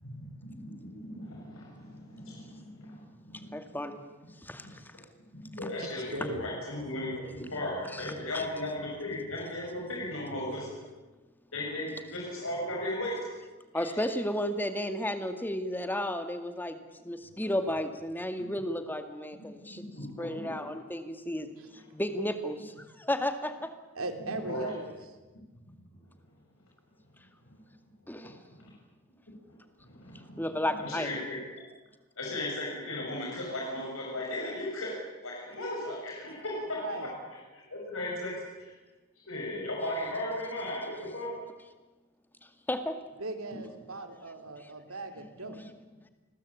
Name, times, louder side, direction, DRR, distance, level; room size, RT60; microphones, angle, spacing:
voice 1, 0.0-3.8 4.6-4.7 5.3-10.7 11.5-13.2 13.7-14.0 19.6-20.6 24.3-24.7 27.5-27.6 28.1-28.7 29.4-31.4 32.2-34.9 35.2-37.1 37.7-38.3 38.6-38.7 39.3-41.3 45.5-45.6, left 1 dB, 65° left, -3 dB, 7.2 m, -37 dB
voice 2, 3.5-4.0 4.4-4.8 7.9-8.5 13.7-16.8 17.0-19.8 20.2-21.5 21.9-22.5 23.1-23.7 28.1-28.4 30.4-31.1 42.7-42.9, left 1 dB, 10° left, 8 dB, 2.1 m, -33 dB
voice 3, 5.8-6.5 21.6-21.7 23.9-24.9 36.6-37.1 43.2-45.6, right 2 dB, 75° right, 7 dB, 3.4 m, -39 dB
29.0 x 21.0 x 8.7 m, 1.2 s
head